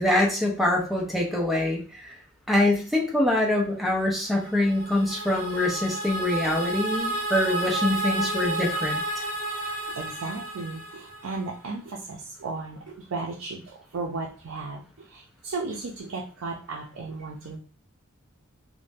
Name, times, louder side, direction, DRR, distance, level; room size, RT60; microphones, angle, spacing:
voice 1, 0.0-2.1 2.5-9.0, left 1 dB, ahead, -1 dB, 0.6 m, -24 dB
sound 1, 4.3-11.5, right 1 dB, 45° right, 1.4 m, -31 dB
voice 2, 9.9-17.6, right 3 dB, 75° right, -1 dB, 0.5 m, -35 dB
2.6 x 2.1 x 3.3 m, 0.38 s
head